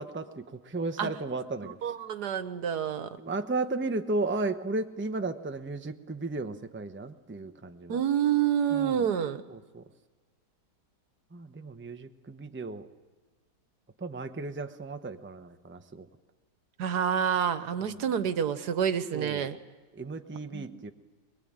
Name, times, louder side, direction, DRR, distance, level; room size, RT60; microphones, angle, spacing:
voice 1, 0.0-1.9 3.2-8.0 8.7-9.0 9.5-9.8 11.3-12.9 14.0-16.1 19.1-19.6 20.0-20.9, right 3 dB, 10° right, 7 dB, 0.8 m, -34 dB
voice 2, 1.6-3.2 7.9-9.4 16.8-19.6 20.5-20.8, right 8 dB, 75° right, 12 dB, 1.6 m, -28 dB
22.5 x 22.5 x 8.8 m, 1.3 s
omnidirectional pair, 1.8 m